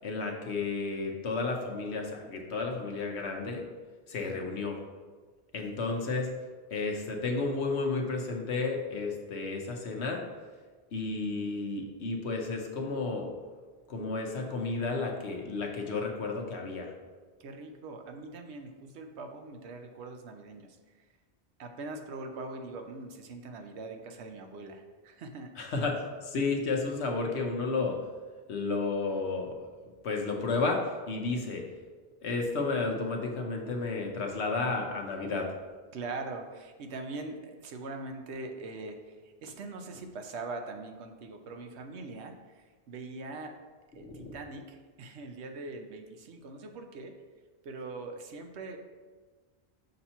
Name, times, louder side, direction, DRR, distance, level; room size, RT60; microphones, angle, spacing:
voice 1, 0.0-3.6 4.1-4.8 5.5-6.3 6.7-10.2 10.9-13.3 13.9-16.9 25.6-28.0 28.5-29.5 30.0-31.6 32.2-35.5 44.1-44.3, left 3 dB, 85° left, 2 dB, 1.2 m, -32 dB
voice 2, 4.2-4.6 17.4-20.8 21.6-25.7 35.9-43.5 43.9-47.1 47.6-48.8, right 3 dB, 85° right, 5 dB, 1.0 m, -42 dB
6.6 x 2.9 x 5.4 m, 1.4 s
omnidirectional pair, 1.1 m